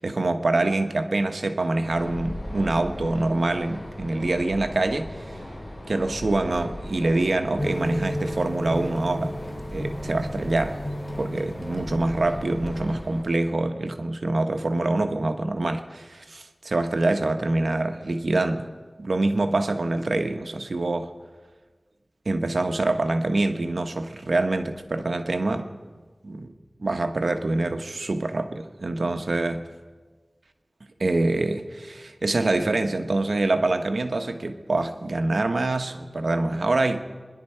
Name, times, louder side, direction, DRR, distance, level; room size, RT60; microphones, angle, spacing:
voice 1, 0.0-5.4 5.9-9.4 9.7-10.8 11.2-18.7 19.0-21.1 22.2-25.7 26.2-26.5 26.8-29.7 31.0-37.0, right 2 dB, 85° right, 1.0 m, -25 dB
sound 1, 1.8-13.2, left 1 dB, 45° left, 6.7 m, -38 dB
sound 2, 7.6-13.2, equal, 30° left, 2.9 m, -33 dB
25.5 x 11.0 x 4.5 m
wide cardioid pair, 50°, 0 cm